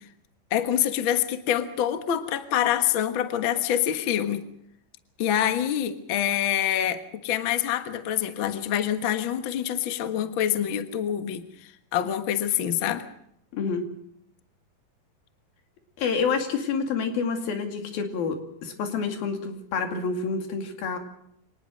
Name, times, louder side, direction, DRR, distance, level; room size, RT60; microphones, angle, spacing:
voice 1, 0.5-4.4 5.2-13.1, left 10 dB, 50° left, 9 dB, 1.5 m, -26 dB
voice 2, 13.5-13.9 16.0-21.0, left 5 dB, 90° left, 5 dB, 4.3 m, -28 dB
24.5 x 19.0 x 6.4 m, 0.72 s
omnidirectional pair, 4.1 m